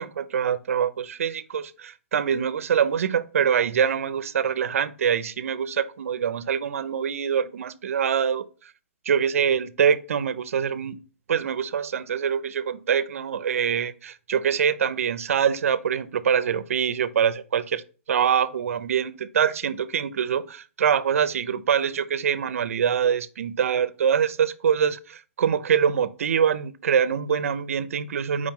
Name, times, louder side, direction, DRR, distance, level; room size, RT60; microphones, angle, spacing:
voice 1, 0.0-8.4 9.1-11.0 11.3-17.8 18.1-28.5, right 7 dB, 75° right, 0.4 m, -24 dB
4.8 x 2.8 x 3.6 m
hypercardioid pair, 170°, 8 cm